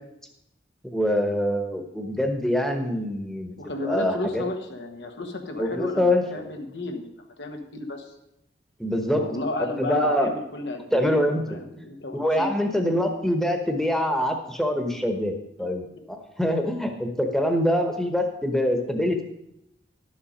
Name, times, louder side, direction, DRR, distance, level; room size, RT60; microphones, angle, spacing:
voice 1, 0.8-3.5 3.9-4.4 5.6-6.4 8.8-9.2 9.8-10.3 10.9-11.4 12.1-19.2, left 1 dB, 5° left, 4 dB, 1.0 m, -24 dB
voice 2, 3.6-8.1 9.1-12.5 15.6-15.7, left 2 dB, 85° left, 4 dB, 1.3 m, -33 dB
11.5 x 7.2 x 5.1 m, 0.81 s
head